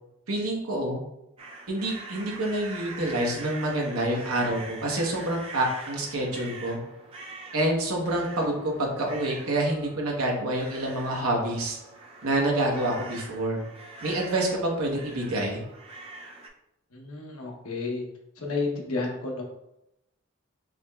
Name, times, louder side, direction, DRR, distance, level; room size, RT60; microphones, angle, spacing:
voice 1, 0.3-1.0 1.7-6.8 7.5-11.8 12.2-13.6 14.0-15.6, right 1 dB, 85° right, -1 dB, 1.1 m, -27 dB
sound 1, 1.4-16.5, right 3 dB, 25° right, 0.4 m, -44 dB
voice 2, 16.9-18.0 18.4-19.4, left 3 dB, 90° left, 0 dB, 1.0 m, -31 dB
6.0 x 3.0 x 2.3 m, 0.86 s
head